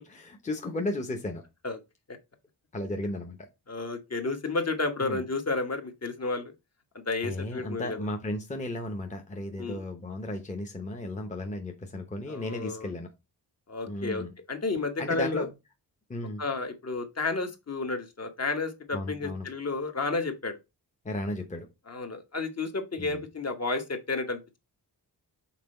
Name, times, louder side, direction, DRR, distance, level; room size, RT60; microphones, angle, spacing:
voice 1, 0.1-1.4 2.7-3.5 5.0-5.2 7.2-13.1 13.9-14.3 15.0-15.5 16.1-16.4 18.9-19.5 21.0-21.7 23.0-23.2, left 1 dB, 20° left, 0.9 m, -34 dB
voice 2, 3.7-6.5 7.1-8.0 9.6-9.8 12.3-12.9 13.7-15.5 16.4-20.6 21.9-24.6, left 3 dB, 40° left, 1.2 m, -31 dB
5.9 x 4.4 x 4.3 m
wide cardioid pair, 165°, 40 cm